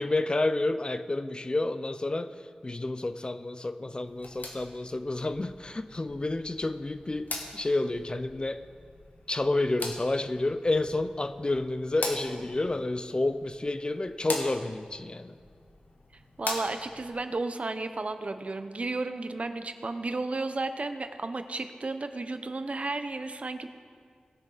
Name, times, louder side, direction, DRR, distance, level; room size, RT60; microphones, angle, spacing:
voice 1, 0.0-2.3 2.6-8.6 9.3-15.4, left 2 dB, 35° left, 11 dB, 0.4 m, -30 dB
sound 1, 4.1-17.1, left 2 dB, 80° left, 1.2 m, -42 dB
voice 2, 16.4-23.7, right 3 dB, 50° right, 9 dB, 0.7 m, -33 dB
19.5 x 6.5 x 3.9 m, 2.1 s
wide cardioid pair, 65°, 3 cm